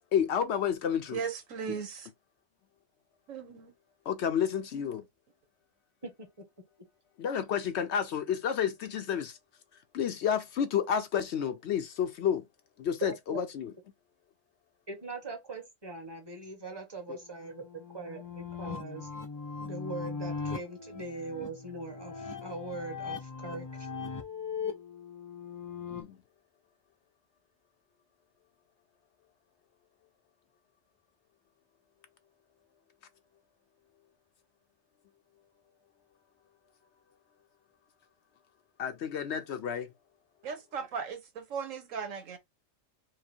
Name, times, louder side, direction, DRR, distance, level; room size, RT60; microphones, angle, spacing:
voice 1, 0.1-1.2 4.1-5.0 7.2-9.4 9.9-12.4 12.8-13.7 25.9-26.2 38.8-39.9, left 8 dB, 65° left, 0.8 m, -30 dB
voice 2, 1.1-1.9 3.3-3.7 40.4-42.4, right 6 dB, 85° right, 1.4 m, -37 dB
voice 3, 13.0-13.4 14.9-19.1 19.6-23.9, right 3 dB, 20° right, 1.2 m, -41 dB
sound 1, 17.2-26.0, left 5 dB, 20° left, 0.5 m, -39 dB
4.7 x 2.2 x 4.4 m
omnidirectional pair, 1.3 m